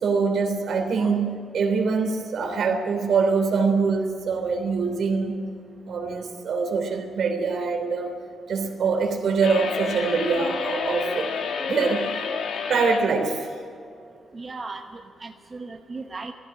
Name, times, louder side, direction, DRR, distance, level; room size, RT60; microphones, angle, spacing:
voice 1, 0.0-5.4 5.9-8.2 8.5-12.1 12.7-13.5, right 4 dB, 65° right, 5 dB, 3.2 m, -24 dB
sound 1, 9.4-13.0, left 6 dB, 80° left, 2.2 m, -29 dB
voice 2, 14.3-16.3, right 3 dB, 30° right, 4 dB, 1.0 m, -37 dB
17.5 x 15.5 x 9.9 m, 2.4 s
cardioid pair, 135°, 0 cm